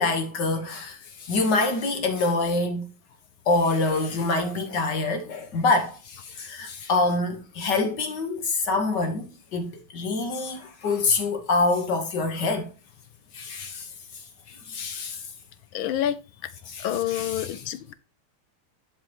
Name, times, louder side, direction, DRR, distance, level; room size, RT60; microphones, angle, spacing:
voice 1, 0.0-2.8 3.5-9.3 9.5-12.7 13.3-13.9 14.5-15.2 16.7-17.6, left 3 dB, 55° left, 1.8 m, -26 dB
voice 2, 15.7-16.2 16.8-17.9, left 11 dB, 75° left, 1.4 m, -27 dB
11.0 x 4.9 x 2.9 m
omnidirectional pair, 2.4 m